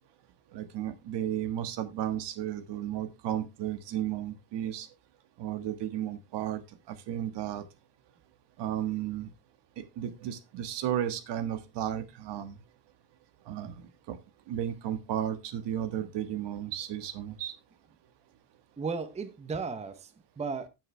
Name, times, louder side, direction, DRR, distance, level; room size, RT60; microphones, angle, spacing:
voice 1, 0.5-4.9 5.4-6.6 6.9-7.6 8.6-9.3 9.8-12.6 13.5-13.7 14.1-14.2 14.5-17.5, right 11 dB, 65° right, 1.6 m, -33 dB
voice 2, 18.8-20.7, right 4 dB, 15° right, 0.8 m, -35 dB
9.7 x 8.5 x 3.3 m
cardioid pair, 140°, 46 cm